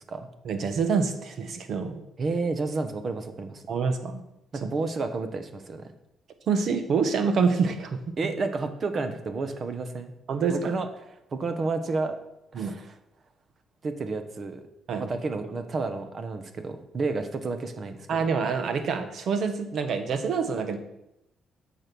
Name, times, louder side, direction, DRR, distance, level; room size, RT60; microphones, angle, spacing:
voice 1, 0.4-2.0 3.7-4.2 4.6-4.7 6.5-8.0 10.3-10.7 12.5-12.7 14.9-15.1 18.1-20.8, right 5 dB, 65° right, 8 dB, 1.4 m, -26 dB
voice 2, 2.2-3.6 4.5-5.9 8.2-10.1 10.5-12.2 12.5-12.9 13.8-14.6 15.0-18.3, right 3 dB, 45° right, 8 dB, 1.3 m, -31 dB
8.8 x 6.4 x 6.3 m, 0.86 s
cardioid pair, 90°, 0 cm